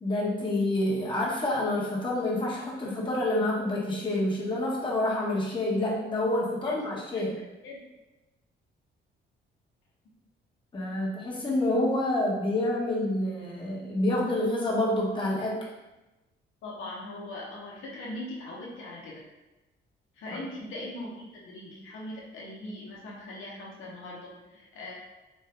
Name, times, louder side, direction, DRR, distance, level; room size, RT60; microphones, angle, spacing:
voice 1, 0.0-7.4 10.7-15.7 20.3-20.4, left 1 dB, 25° left, -5 dB, 1.1 m, -28 dB
voice 2, 7.1-7.8 16.6-19.2 20.2-24.9, left 1 dB, 80° left, -3 dB, 0.9 m, -40 dB
3.5 x 2.7 x 3.4 m, 1.0 s
cardioid pair, 90°, 20 cm